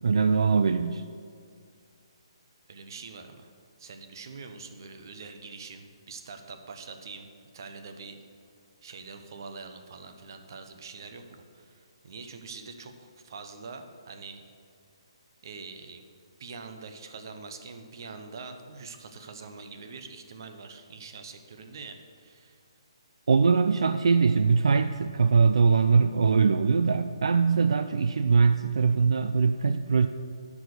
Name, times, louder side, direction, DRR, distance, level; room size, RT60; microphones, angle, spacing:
voice 1, 0.0-1.0 23.3-30.1, right 5 dB, 70° right, 9 dB, 0.4 m, -22 dB
voice 2, 2.7-3.5 3.8-7.3 7.5-8.2 8.8-14.4 15.4-16.0 16.4-22.6, right 4 dB, 45° right, 6 dB, 0.9 m, -44 dB
10.0 x 4.9 x 6.7 m, 2.3 s
hypercardioid pair, 170°, 3 cm